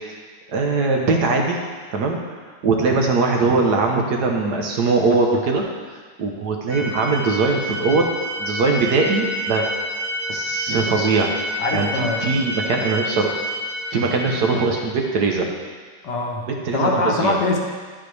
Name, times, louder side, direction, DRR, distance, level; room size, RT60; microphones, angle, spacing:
voice 1, 0.5-1.6 1.9-2.2 2.6-5.6 6.2-8.1 8.4-9.7 10.3-11.3 11.7-13.3 13.9-15.5 16.5-17.4, right 3 dB, 65° right, 1 dB, 1.5 m, -21 dB
sound 1, 6.7-14.6, equal, 45° right, 3.0 m, -28 dB
voice 2, 11.6-12.2 16.0-16.5 16.7-17.6, left 3 dB, 70° left, 0 dB, 1.7 m, -22 dB
10.5 x 8.2 x 3.3 m, 1.5 s
omnidirectional pair, 2.0 m